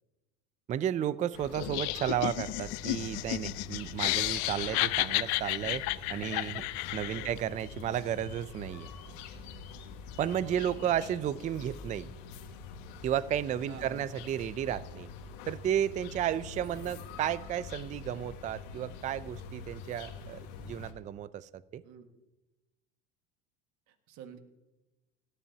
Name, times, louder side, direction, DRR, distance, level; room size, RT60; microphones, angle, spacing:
voice 1, 0.7-5.8 6.1-6.6 6.9-8.9 10.2-12.1 13.0-15.1 15.5-21.8, right 10 dB, 25° right, 17 dB, 0.3 m, -33 dB
sound 1, 1.3-20.9, left 4 dB, 85° left, 1.6 m, -45 dB
Laughter, 1.5-7.4, left 20 dB, 65° left, 0.5 m, -32 dB
voice 2, 5.3-5.7 7.0-7.6 10.4-11.1 13.7-14.1 16.7-16.9 20.2-20.6 21.8-22.1 23.9-24.4, right 6 dB, 60° right, 7 dB, 1.7 m, -50 dB
18.0 x 13.0 x 2.8 m, 1.0 s
supercardioid pair, 125°, 31 cm